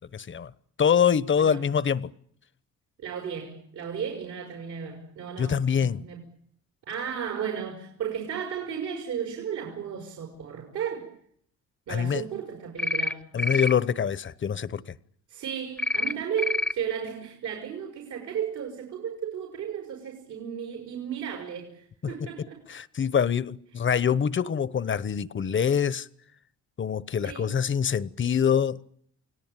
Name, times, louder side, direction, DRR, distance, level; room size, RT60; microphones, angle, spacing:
voice 1, 0.1-0.5 0.8-2.1 5.4-6.0 11.9-12.2 13.3-14.9 22.0-22.1 22.7-26.1 26.8-28.8, left 7 dB, 40° left, 1.1 m, -25 dB
voice 2, 1.4-1.7 3.0-6.3 6.9-11.1 11.9-13.3 15.3-22.6 27.2-27.5, right 8 dB, 75° right, 5.2 m, -34 dB
sound 1, 12.8-13.1 13.4-13.7 15.8-16.1 16.4-16.7, left 2 dB, ahead, 1.0 m, -26 dB
29.0 x 18.0 x 9.1 m
cardioid pair, 90°, 30 cm